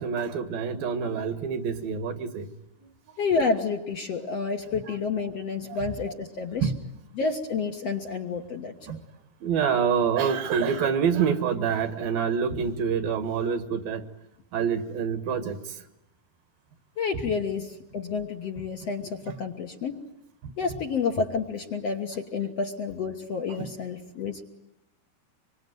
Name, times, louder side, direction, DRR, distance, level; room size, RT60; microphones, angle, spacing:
voice 1, 0.0-2.5 5.6-5.8 6.6-6.8 8.9-9.0 9.4-14.0 14.5-15.6 19.3-19.4 20.4-20.5 23.5-23.7, right 7 dB, 70° right, 11 dB, 3.1 m, -27 dB
voice 2, 3.2-6.7 7.2-8.7 17.0-20.0 20.6-24.4, left 4 dB, 55° left, 3 dB, 2.0 m, -29 dB
26.0 x 24.5 x 9.3 m, 0.86 s
omnidirectional pair, 4.5 m